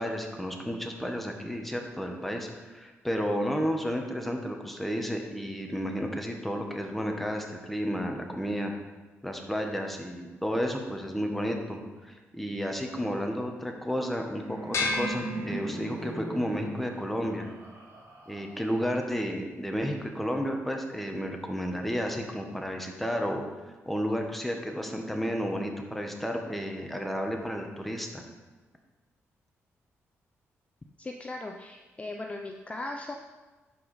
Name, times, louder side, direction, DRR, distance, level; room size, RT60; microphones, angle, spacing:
voice 1, 0.0-8.7 9.2-17.5 18.3-23.4 23.8-28.2, equal, 5° left, 2 dB, 1.5 m, -32 dB
Laughter, 14.0-19.0, right 2 dB, 80° right, 3.1 m, -40 dB
sound 1, 14.7-16.2, left 3 dB, 60° left, 1.9 m, -32 dB
voice 2, 31.0-33.1, left 2 dB, 25° left, 3 dB, 0.7 m, -38 dB
11.5 x 4.9 x 5.0 m, 1.2 s
cardioid pair, 75°, 5 cm